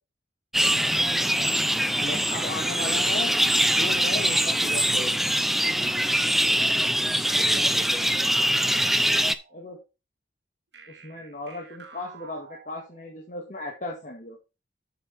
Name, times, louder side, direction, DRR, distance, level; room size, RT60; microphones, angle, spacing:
sound 1, 0.5-9.3, equal, ahead, 0.5 m, -23 dB
voice 1, 0.8-1.4 6.4-6.9 7.3-8.3, right 1 dB, 40° right, 1.2 m, -42 dB
voice 2, 2.0-5.1 7.7-7.9 9.5-9.8 10.9-14.4, left 2 dB, 45° left, 2.0 m, -36 dB
sound 2, 8.0-9.8 10.7-13.2, right 6 dB, 80° right, 1.9 m, -49 dB
8.0 x 7.1 x 4.5 m
head